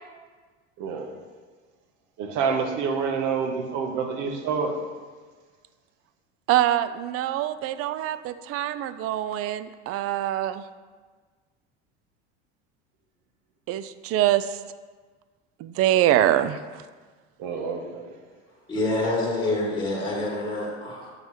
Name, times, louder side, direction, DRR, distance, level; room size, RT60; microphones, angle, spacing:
voice 1, 2.2-4.7 17.4-18.1, right 5 dB, 60° right, 4 dB, 1.1 m, -27 dB
voice 2, 6.5-10.6 13.7-14.6 15.6-16.8, right 12 dB, 45° right, 13 dB, 0.4 m, -24 dB
voice 3, 18.7-21.1, left 2 dB, 15° left, -7 dB, 2.0 m, -27 dB
7.8 x 5.3 x 3.1 m, 1.4 s
supercardioid pair, 90°, 33 cm